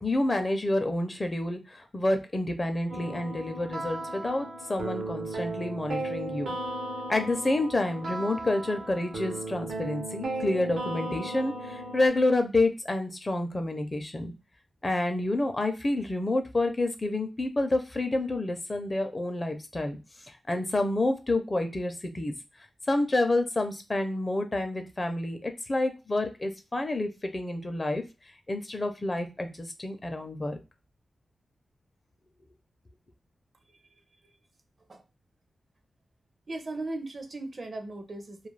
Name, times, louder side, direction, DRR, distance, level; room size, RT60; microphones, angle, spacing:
voice 1, 0.0-6.6 7.1-14.3 14.8-20.0 20.5-22.3 22.9-28.0 28.5-30.6, left 2 dB, 30° left, 0.5 m, -29 dB
sound 1, 2.9-12.1, right 2 dB, 85° right, 0.7 m, -36 dB
voice 2, 36.5-38.5, right 2 dB, 50° right, 0.5 m, -37 dB
2.3 x 2.2 x 3.2 m
wide cardioid pair, 90°, 0 cm